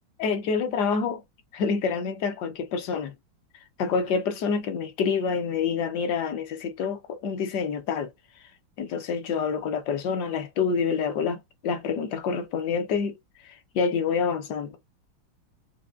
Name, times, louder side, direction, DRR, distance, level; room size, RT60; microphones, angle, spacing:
voice 1, 0.2-1.2 1.5-3.1 3.8-8.1 8.8-13.2 13.4-14.8, left 5 dB, 70° left, 1.0 m, -27 dB
5.1 x 2.2 x 2.4 m
omnidirectional pair, 2.3 m